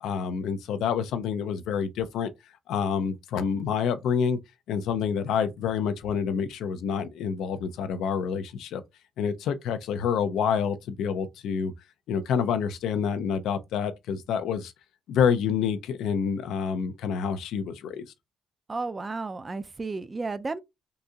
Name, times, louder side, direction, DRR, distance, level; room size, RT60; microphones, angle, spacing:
voice 1, 0.0-2.3 2.7-4.4 4.7-8.8 9.2-11.7 12.1-14.7 15.1-18.1, left 7 dB, 85° left, 0.4 m, -27 dB
voice 2, 18.7-20.6, right 3 dB, 25° right, 0.4 m, -33 dB
3.8 x 2.7 x 2.3 m
cardioid pair, 90°, 0 cm